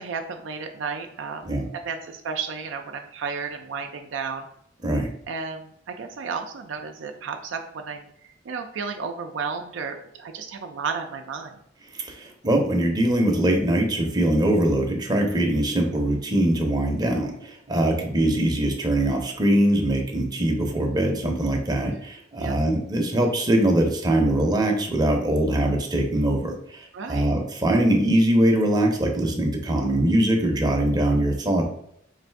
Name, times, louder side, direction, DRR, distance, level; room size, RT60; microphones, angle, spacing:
voice 1, 0.0-4.5 5.3-11.6 21.9-22.0 22.4-22.6 26.9-27.3, right 5 dB, 70° right, 5 dB, 0.4 m, -33 dB
voice 2, 11.9-31.7, right 1 dB, 20° right, 1 dB, 0.7 m, -22 dB
3.2 x 2.5 x 4.5 m, 0.71 s
head